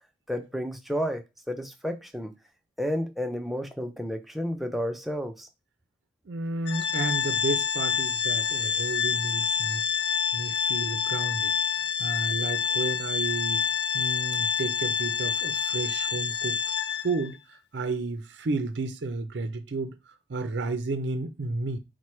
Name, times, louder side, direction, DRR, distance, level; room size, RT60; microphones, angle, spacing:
voice 1, 0.3-2.3 2.8-5.5, equal, ahead, 0.4 m, -31 dB
voice 2, 6.3-9.8 10.3-11.5 12.0-13.6 13.9-16.6 17.0-19.9 20.3-21.8, right 3 dB, 60° right, 0.5 m, -32 dB
Organ, 6.7-17.3, left 7 dB, 55° left, 0.4 m, -27 dB
4.6 x 2.1 x 4.3 m
head